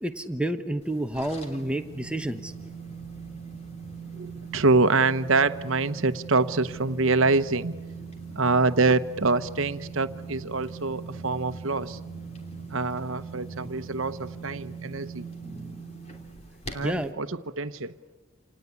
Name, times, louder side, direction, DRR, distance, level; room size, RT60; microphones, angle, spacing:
voice 1, 0.0-2.5 15.4-15.8 16.8-17.1, right 1 dB, 5° right, 7 dB, 1.0 m, -30 dB
sound 1, 0.7-14.8, right 1 dB, 25° right, 6.2 m, -52 dB
sound 2, 0.8-17.1, right 5 dB, 30° left, 3.1 m, -41 dB
voice 2, 4.2-7.7 8.3-12.0 12.7-15.3 16.7-18.0, right 3 dB, 70° right, 12 dB, 1.0 m, -25 dB
28.0 x 19.0 x 9.6 m, 1.2 s
head